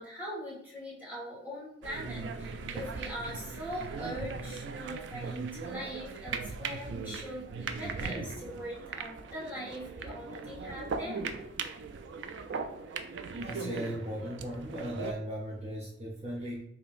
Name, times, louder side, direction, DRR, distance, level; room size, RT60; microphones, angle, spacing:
voice 1, 0.0-11.3, equal, 10° right, -8 dB, 1.4 m, -41 dB
sound 1, 1.8-15.1, right 4 dB, 75° right, 0.3 m, -39 dB
voice 2, 13.4-16.6, equal, 35° right, -5 dB, 0.6 m, -37 dB
4.9 x 2.7 x 2.5 m, 0.73 s
head